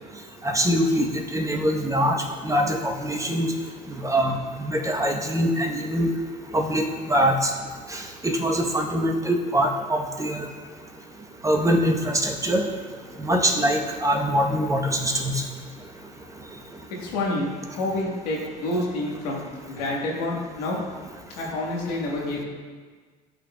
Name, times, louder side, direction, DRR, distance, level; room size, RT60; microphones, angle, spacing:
voice 1, 0.4-3.5 3.9-6.1 6.5-7.5 7.9-10.5 11.4-12.7 13.2-15.4, equal, 15° right, 2 dB, 0.9 m, -23 dB
voice 2, 17.0-17.5 17.8-20.8 21.4-22.4, left 2 dB, 85° left, -3 dB, 1.4 m, -28 dB
12.0 x 4.2 x 2.3 m, 1.5 s
hypercardioid pair, 75°, 20 cm